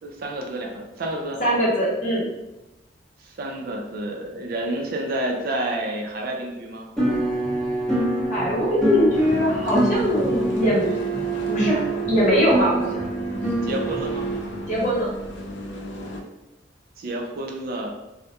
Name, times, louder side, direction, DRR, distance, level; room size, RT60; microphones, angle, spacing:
voice 1, 0.0-1.4 3.2-6.9 13.6-14.3 17.0-17.9, right 1 dB, 55° right, 1 dB, 0.4 m, -29 dB
voice 2, 1.4-2.3 8.3-10.9 11.5-13.0 14.7-15.1, equal, 40° left, -6 dB, 0.9 m, -21 dB
sound 1, 7.0-14.4, right 2 dB, 5° left, 0.6 m, -25 dB
sound 2, 9.1-16.2, left 1 dB, 70° left, 0.4 m, -35 dB
2.2 x 2.0 x 2.8 m, 0.96 s
head